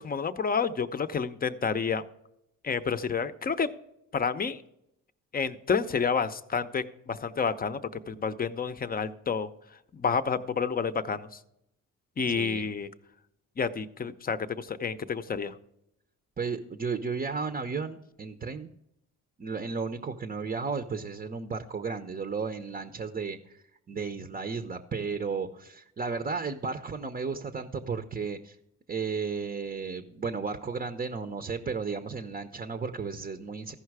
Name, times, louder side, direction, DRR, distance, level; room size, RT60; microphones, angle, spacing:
voice 1, 0.0-2.0 2.6-3.7 4.1-4.6 5.3-7.8 8.1-9.5 9.9-11.3 12.2-12.9 13.6-15.6, left 5 dB, 30° left, 12 dB, 0.7 m, -29 dB
voice 2, 12.4-12.7 16.4-18.7 19.4-23.6 23.9-28.6 28.9-33.7, right 5 dB, 30° right, 7 dB, 0.7 m, -34 dB
14.5 x 5.6 x 4.8 m, 0.80 s
cardioid pair, 90°, 30 cm